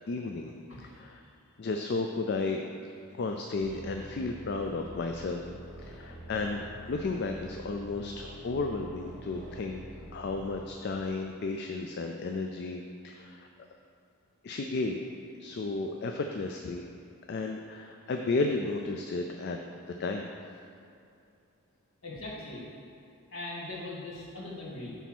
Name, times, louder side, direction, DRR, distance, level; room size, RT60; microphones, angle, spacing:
voice 1, 0.1-0.5 0.8-1.2 1.6-2.6 3.1-5.4 5.8-6.6 6.9-9.8 10.1-13.5 14.4-15.0 15.4-16.8 17.3-19.6 20.0-20.3, left 3 dB, 50° left, 3 dB, 0.4 m, -33 dB
sound 1, 3.6-10.6, equal, 5° left, 1.1 m, -46 dB
voice 2, 22.0-22.6 23.3-25.0, left 2 dB, 65° left, -5 dB, 1.7 m, -40 dB
8.3 x 3.5 x 6.0 m, 2.5 s
head